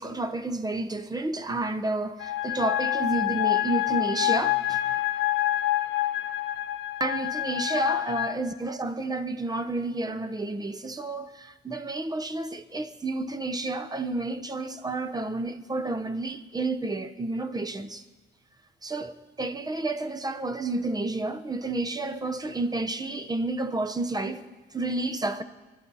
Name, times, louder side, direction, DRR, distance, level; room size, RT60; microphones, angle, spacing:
voice 1, 0.0-4.8 7.0-18.0 18.8-25.4, right 2 dB, 20° right, 1.0 m, -30 dB
sound 1, 2.2-8.3, left 14 dB, 70° left, 0.9 m, -27 dB
25.5 x 12.0 x 4.2 m
cardioid pair, 90°, 20 cm